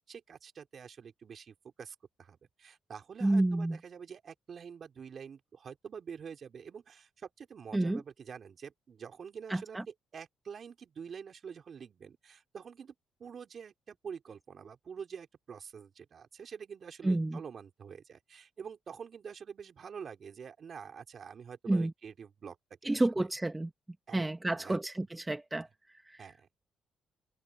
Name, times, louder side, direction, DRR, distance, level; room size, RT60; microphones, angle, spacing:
voice 1, 0.1-12.9 13.2-22.6 22.8-23.3 24.1-24.8 26.2-26.5, right 7 dB, 50° right, 4.7 m, -47 dB
voice 2, 3.2-3.8 7.7-8.0 9.5-9.6 17.0-17.4 21.7-21.9 22.8-23.7 24.1-25.7, right 2 dB, 15° right, 1.4 m, -29 dB
open air
cardioid pair, 90°, 0 cm